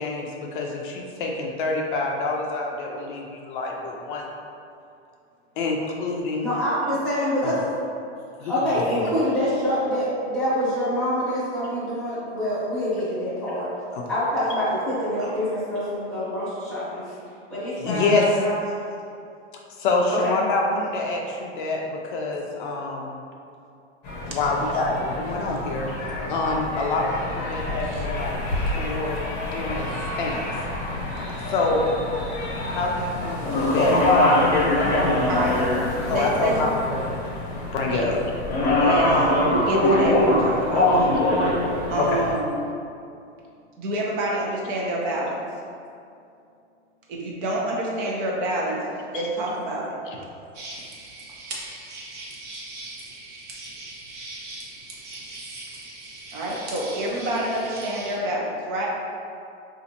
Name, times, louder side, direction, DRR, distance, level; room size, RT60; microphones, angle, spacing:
voice 1, 0.0-4.2 5.6-6.5 7.4-7.5 8.7-9.1 13.9-14.0 17.8-18.3 19.8-23.1 24.2-25.9 26.3-27.1 27.3-28.4 28.8-29.2 29.5-29.9 30.2-30.4 31.5-32.0 32.7-34.0 36.1-37.2 37.7-38.2 42.0-42.2 49.1-49.3, left 3 dB, 45° left, -1 dB, 0.4 m, -26 dB
voice 2, 6.4-7.7 8.4-13.7 14.1-17.2 17.5-18.6 20.1-20.4 25.9-26.0, equal, 5° right, -14 dB, 0.9 m, -26 dB
sound 1, 24.0-42.3, left 1 dB, 30° left, 0.9 m, -24 dB
voice 3, 35.3-35.7 36.1-36.6 37.9-38.1 38.8-41.3 41.9-42.6 43.8-45.4 47.1-48.8 49.1-50.0 56.3-58.9, right 1 dB, 45° right, -3 dB, 0.7 m, -27 dB
sound 2, 50.5-58.2, right 2 dB, 85° right, 0.9 m, -39 dB
4.0 x 2.5 x 2.7 m, 2.5 s
supercardioid pair, 145°, 35 cm